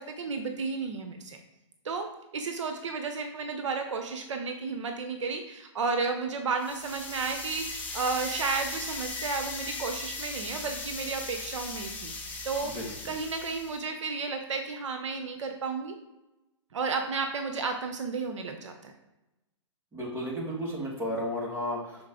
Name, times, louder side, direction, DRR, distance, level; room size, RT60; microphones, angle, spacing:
voice 1, 0.0-1.4 1.8-2.1 2.3-12.1 12.4-16.0 16.7-18.9, right 4 dB, 70° right, 5 dB, 0.8 m, -32 dB
sound 1, 6.6-13.8, left 3 dB, 10° left, 0.9 m, -38 dB
voice 2, 19.9-22.1, equal, 15° right, -3 dB, 1.8 m, -33 dB
6.3 x 4.1 x 3.7 m, 0.99 s
hypercardioid pair, 130°, 16 cm